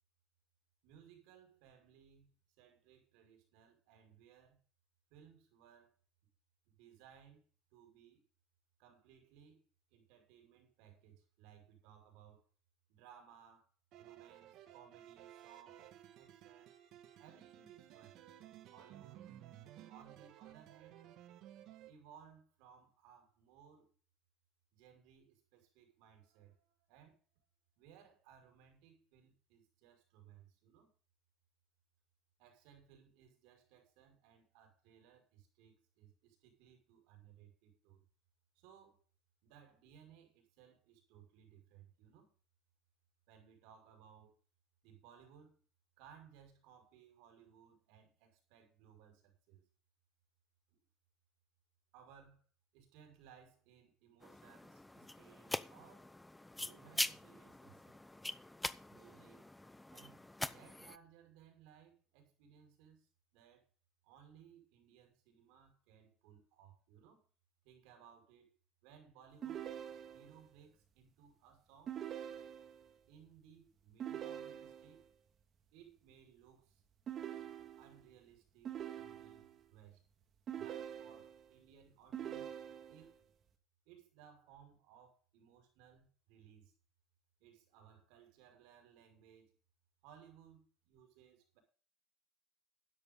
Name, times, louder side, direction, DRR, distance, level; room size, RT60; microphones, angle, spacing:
voice 1, 0.8-4.6 5.1-6.0 6.7-7.4 7.7-8.2 8.8-9.6 9.9-12.4 12.9-13.7 14.0-15.9 16.2-16.8 17.2-18.2 18.7-19.3 19.9-21.0 21.9-23.9 24.7-27.2 27.8-30.9 32.4-38.0 38.6-39.0 39.4-42.3 43.3-44.4 44.8-45.6 46.0-49.6 50.7-50.8 51.9-52.5 52.7-56.1 56.6-57.9 58.9-59.5 59.9-63.7 64.0-67.2 67.6-68.6 68.8-69.7 70.1-72.0 73.1-75.1 75.7-76.8 77.8-80.0 80.6-83.2 83.9-86.7 87.4-89.6 90.0-91.6, right 8 dB, 85° right, 5.6 m, -62 dB
sound 1, 13.9-21.9, right 12 dB, 65° right, 2.1 m, -56 dB
sound 2, 54.2-61.0, left 2 dB, 10° left, 0.7 m, -43 dB
sound 3, 69.4-70.5 71.9-72.9 74.0-75.0 77.1-78.1 78.7-79.6 80.5-81.5 82.1-83.1, right 10 dB, 40° right, 2.1 m, -45 dB
13.0 x 10.5 x 3.9 m
cardioid pair, 130°, 0 cm